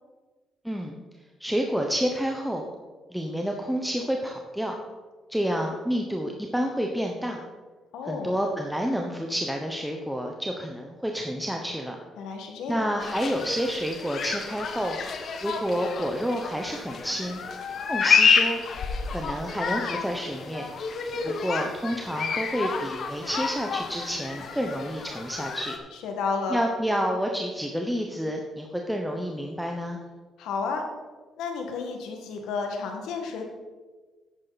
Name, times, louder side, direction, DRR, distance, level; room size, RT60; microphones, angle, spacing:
voice 1, 0.6-1.0 1.4-2.6 3.1-4.7 5.3-7.4 8.0-12.0 12.7-15.0 15.4-17.4 17.9-18.6 19.1-20.7 21.2-25.8 26.5-30.0, equal, ahead, 1 dB, 1.0 m, -29 dB
voice 2, 7.9-8.3 12.2-12.8 26.0-26.6 30.4-30.8 31.4-33.4, left 4 dB, 85° left, 3 dB, 1.8 m, -31 dB
sound 1, 13.0-25.8, left 5 dB, 60° left, 1.2 m, -29 dB
10.5 x 8.7 x 4.2 m, 1.3 s
cardioid pair, 90°, 0 cm